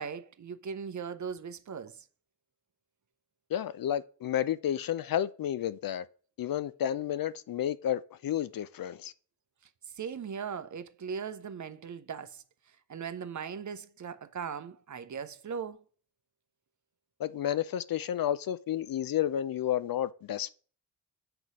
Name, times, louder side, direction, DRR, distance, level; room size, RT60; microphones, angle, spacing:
voice 1, 0.0-2.1 9.9-12.4 12.9-15.8, right 6 dB, 40° right, 0.8 m, -39 dB
voice 2, 3.5-6.0 6.4-9.1 17.2-20.5, left 11 dB, 50° left, 0.6 m, -31 dB
6.8 x 3.9 x 6.0 m
hypercardioid pair, 45°, 46 cm